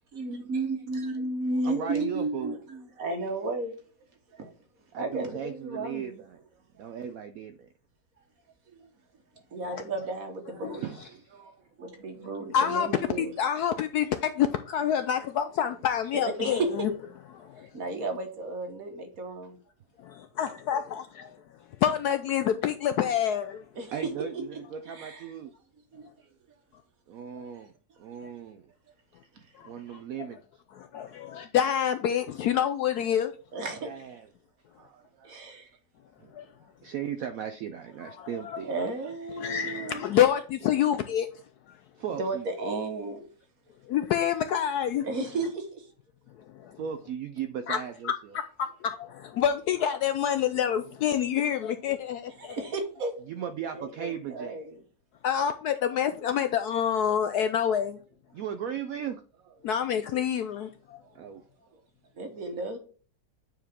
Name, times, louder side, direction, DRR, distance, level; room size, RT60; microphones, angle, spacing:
voice 1, 0.1-3.8 4.3-4.5 4.9-6.2 8.7-8.9 9.5-10.9 11.8-13.3 16.4-16.9 17.7-19.6 23.7-23.9 24.8-25.2 25.9-26.1 27.5-27.6 29.3-29.4 29.9-30.0 33.5-33.9 35.2-35.7 36.2-36.3 38.6-40.0 42.2-43.3 45.0-45.9 52.4-53.1 53.7-54.8 62.2-62.8, right 2 dB, 50° right, 1.5 m, -33 dB
voice 2, 1.6-2.6 4.9-6.5 6.8-7.7 10.4-12.3 23.9-25.5 27.1-27.7 28.0-28.7 29.6-30.4 33.8-34.3 34.8-35.4 36.8-38.7 42.0-42.5 46.8-48.1 53.3-54.6 58.3-59.6 61.1-61.4, right 8 dB, 85° right, 0.7 m, -37 dB
voice 3, 12.5-12.9 13.2-16.9 17.3-17.7 20.0-21.3 21.8-23.6 29.6-30.3 30.7-33.3 36.3-36.5 38.0-38.6 39.4-41.3 43.9-45.1 46.5-46.8 47.7-47.8 48.0-48.1 48.6-52.6 55.2-58.0 59.6-61.0, left 9 dB, 75° left, 0.9 m, -27 dB
9.0 x 4.7 x 3.6 m
omnidirectional pair, 2.1 m